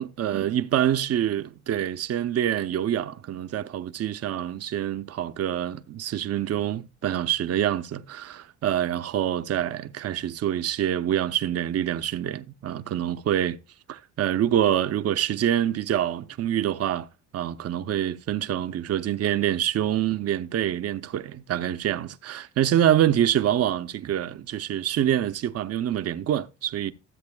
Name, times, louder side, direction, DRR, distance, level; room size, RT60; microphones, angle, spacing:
voice 1, 0.0-13.6 13.9-17.1 17.3-26.9, right 11 dB, 55° right, 0.7 m, -26 dB
13.0 x 7.8 x 2.3 m
cardioid pair, 90°, 30 cm